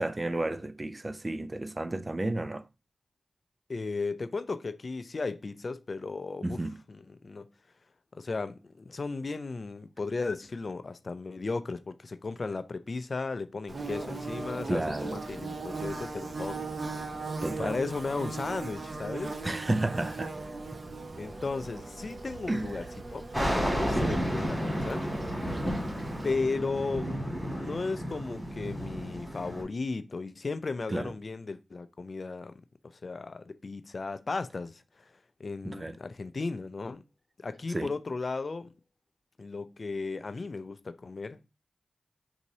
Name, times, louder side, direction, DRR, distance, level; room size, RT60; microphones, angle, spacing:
voice 1, 0.0-2.7 6.4-6.8 14.7-15.2 17.4-17.8 19.4-20.3 22.5-22.8 24.0-24.2 30.9-31.1 35.6-36.0 37.7-37.9, right 2 dB, 35° right, 0.3 m, -32 dB
voice 2, 3.7-7.5 8.1-16.6 17.6-19.4 21.2-25.1 26.2-34.8 35.4-37.0 37.4-38.7 39.4-41.4, left 3 dB, 55° left, 0.3 m, -35 dB
Bird / Buzz, 13.7-26.3, right 3 dB, 55° right, 0.7 m, -39 dB
sound 1, 23.3-29.6, equal, 10° right, 2.0 m, -32 dB
4.0 x 2.7 x 2.7 m
cardioid pair, 45°, 0 cm